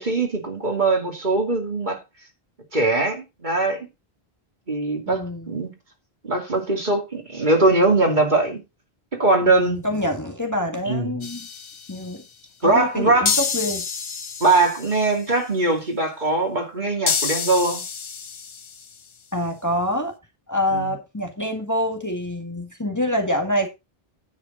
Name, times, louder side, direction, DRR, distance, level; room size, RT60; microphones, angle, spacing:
voice 1, 0.0-2.0 2.7-3.9 4.7-5.7 6.2-8.6 9.1-9.8 10.9-11.2 12.6-13.3 14.4-17.8 20.7-20.9, right 2 dB, 50° right, 2.8 m, -21 dB
voice 2, 5.1-5.5 9.4-11.5 11.9-12.2 12.6-13.9 19.3-20.1 20.5-23.7, left 1 dB, 15° left, 1.8 m, -26 dB
sound 1, 11.2-12.1 13.3-15.2 17.1-19.0, left 6 dB, 40° left, 0.5 m, -28 dB
10.0 x 8.4 x 4.0 m
omnidirectional pair, 1.0 m